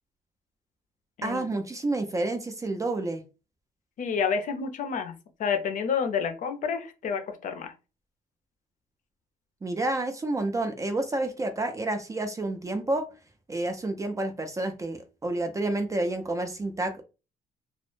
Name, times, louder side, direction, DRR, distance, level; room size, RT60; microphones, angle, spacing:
voice 1, 1.2-3.2 9.6-13.1 13.5-17.0, right 2 dB, 20° right, 7 dB, 0.4 m, -29 dB
voice 2, 4.0-5.1 5.4-7.7, left 6 dB, 50° left, 7 dB, 0.6 m, -29 dB
2.0 x 2.0 x 3.0 m, 0.31 s
cardioid pair, 110°, 17 cm